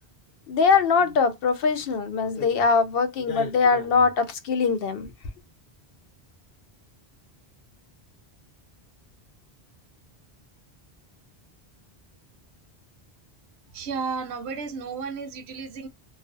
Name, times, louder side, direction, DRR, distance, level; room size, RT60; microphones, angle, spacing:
voice 1, 0.5-5.1, left 5 dB, 70° left, 0.7 m, -22 dB
voice 2, 13.7-15.9, right 5 dB, 80° right, 0.9 m, -33 dB
2.4 x 2.3 x 2.4 m
omnidirectional pair, 1.1 m